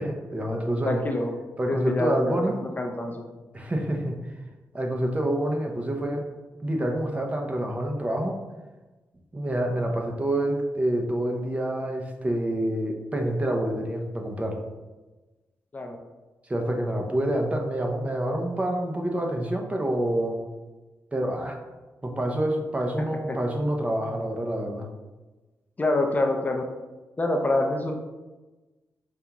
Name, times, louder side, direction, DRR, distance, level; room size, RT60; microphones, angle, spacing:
voice 1, 0.0-1.0 1.6-2.5 3.5-4.1 4.7-6.2 6.6-8.4 9.3-14.6 16.5-20.4 21.1-21.6 22.0-24.9, right 1 dB, 20° right, 2 dB, 0.6 m, -27 dB
voice 2, 0.8-1.3 1.7-2.4 2.8-3.3 15.7-16.0 23.3-23.4 25.8-26.6 27.2-27.9, left 2 dB, 30° left, 3 dB, 0.4 m, -26 dB
5.0 x 2.3 x 2.9 m, 1.2 s
cardioid pair, 75°, 6 cm